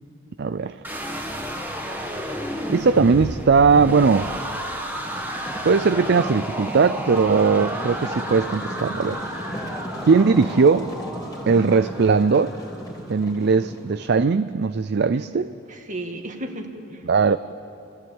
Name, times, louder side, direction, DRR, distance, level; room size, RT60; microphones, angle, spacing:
voice 1, 0.4-0.8 2.7-4.3 5.6-9.2 10.1-10.9 11.5-12.5 13.1-15.5 17.1-17.4, right 5 dB, 55° right, 13 dB, 0.5 m, -19 dB
sound 1, 0.8-12.9, equal, 10° right, 1.9 m, -32 dB
sound 2, 5.0-14.1, equal, 20° left, 3.4 m, -36 dB
voice 2, 15.1-17.0, right 1 dB, 40° right, 4 dB, 2.2 m, -36 dB
29.0 x 16.0 x 8.9 m, 2.8 s
head